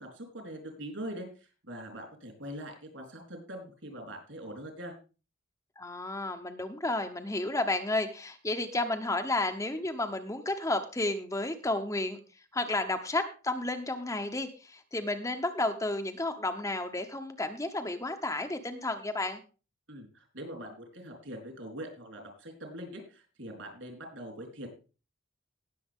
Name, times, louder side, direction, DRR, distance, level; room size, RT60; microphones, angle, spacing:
voice 1, 0.0-4.9 19.9-24.7, equal, 65° right, 3 dB, 4.1 m, -43 dB
voice 2, 5.8-12.2 12.5-19.4, left 2 dB, 15° left, 5 dB, 0.8 m, -32 dB
18.5 x 7.0 x 3.6 m, 0.34 s
head